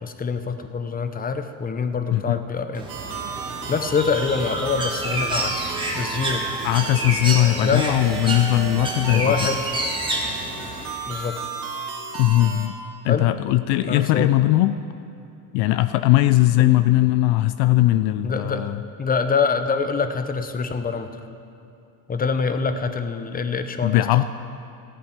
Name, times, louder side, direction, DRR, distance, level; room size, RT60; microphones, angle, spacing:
voice 1, 0.0-2.9 3.7-6.4 7.6-8.0 9.1-9.7 11.1-11.4 13.1-13.3 13.9-14.3 16.6-16.7 18.2-18.7 19.0-21.2 22.1-24.1, left 5 dB, 20° left, 9 dB, 0.7 m, -25 dB
voice 2, 2.1-2.4 6.6-9.4 12.2-12.8 13.0-14.8 15.5-18.8 23.8-24.2, left 16 dB, 60° left, 12 dB, 0.5 m, -19 dB
Bird, 2.7-10.8, right 1 dB, 10° right, 1.8 m, -29 dB
sound 1, 2.9-12.7, right 5 dB, 60° right, 1.8 m, -33 dB
14.0 x 8.0 x 5.9 m, 2.7 s
supercardioid pair, 105°, 45 cm